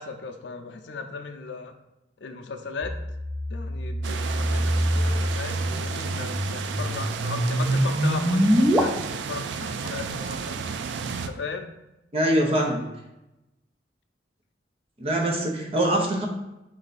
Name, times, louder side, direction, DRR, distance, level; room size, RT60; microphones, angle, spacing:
voice 1, 0.0-1.7 2.2-2.9 3.5-10.6 11.1-11.7, left 4 dB, 85° left, 7 dB, 0.5 m, -37 dB
sound 1, 2.8-8.8, equal, 10° right, 0.4 m, -25 dB
sound 2, 4.0-11.3, right 6 dB, 85° right, 0.3 m, -33 dB
voice 2, 12.1-12.9 15.0-16.3, right 1 dB, 35° right, 1 dB, 0.8 m, -23 dB
4.5 x 2.7 x 4.0 m, 0.93 s
head